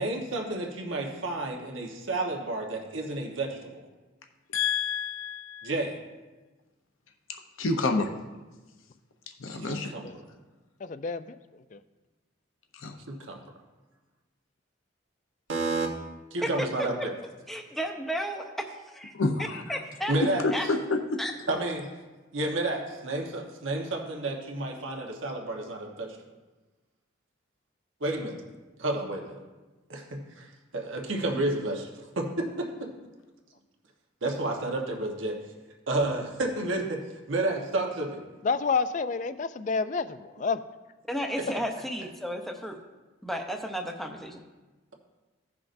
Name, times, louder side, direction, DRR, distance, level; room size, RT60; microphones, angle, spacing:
voice 1, 0.0-3.7 5.6-6.0 9.6-10.1 13.1-13.4 15.5-15.9 16.3-17.1 20.1-20.4 21.5-21.9 22.3-26.2 28.0-28.3 28.8-29.4 29.9-31.9 32.2-32.9 34.2-35.4 35.9-37.0 37.3-38.2, right 2 dB, 80° right, 1 dB, 1.2 m, -30 dB
voice 2, 4.5-5.7 7.6-8.1 9.4-9.9 12.8-12.9 19.1-19.8 20.4-21.0, left 3 dB, 85° left, 4 dB, 0.7 m, -28 dB
voice 3, 10.8-11.4 11.7-11.8 38.4-40.6, left 5 dB, 40° left, 12 dB, 0.3 m, -29 dB
voice 4, 17.5-19.1 19.4-20.1 20.5-20.7 21.2-21.3 41.1-42.8 43.2-44.4, equal, ahead, 3 dB, 0.6 m, -33 dB
16.0 x 5.9 x 2.6 m, 1.2 s
head